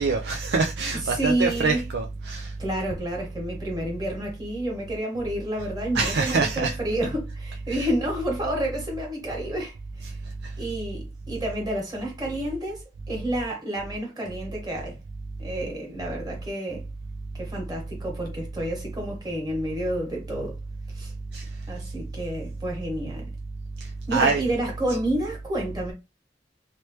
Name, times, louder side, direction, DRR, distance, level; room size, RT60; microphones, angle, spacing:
voice 1, 0.0-2.5 5.9-6.8 10.4-10.5 21.3-21.4 23.8-24.4, right 4 dB, 70° right, 0.4 m, -25 dB
voice 2, 1.0-1.8 2.6-10.2 10.6-15.0 15.4-16.8 17.4-20.6 20.9-21.1 21.7-23.3 24.1-25.9, right 1 dB, 25° right, 1.5 m, -30 dB
3.1 x 3.0 x 3.1 m
head